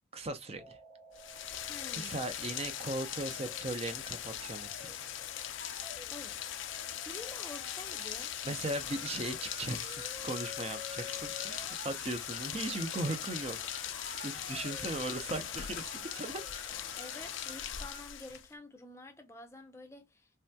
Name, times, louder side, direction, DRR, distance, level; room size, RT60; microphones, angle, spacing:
voice 1, 0.1-0.8 1.9-5.1 8.4-13.6 13.8-16.4, right 2 dB, 30° right, 0.5 m, -38 dB
sound 1, 0.6-17.4, left 2 dB, 55° right, 0.9 m, -52 dB
Rain, 1.1-18.5, left 11 dB, 90° left, 0.4 m, -40 dB
voice 2, 1.7-2.2 6.1-6.4 6.6-8.3 17.0-20.3, left 2 dB, 15° left, 0.6 m, -49 dB
sound 2, 8.8-18.1, right 3 dB, 75° right, 1.3 m, -53 dB
3.3 x 2.8 x 2.2 m
head